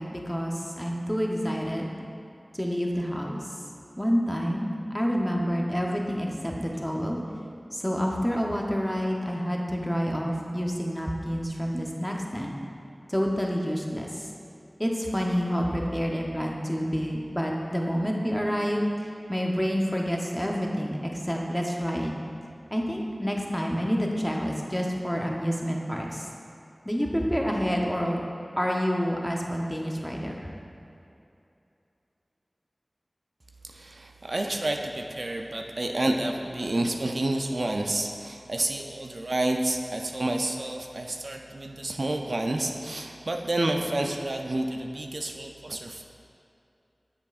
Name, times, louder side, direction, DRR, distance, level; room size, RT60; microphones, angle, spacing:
voice 1, 0.0-1.9 2.5-3.4 4.0-7.2 7.7-12.5 13.1-14.3 14.8-22.1 22.7-26.3 26.8-28.2 28.6-30.5, equal, 5° left, -1 dB, 0.7 m, -28 dB
voice 2, 33.6-46.0, right 1 dB, 70° right, 3 dB, 0.4 m, -29 dB
7.7 x 6.8 x 2.4 m, 2.7 s
wide cardioid pair, 60°, 0 cm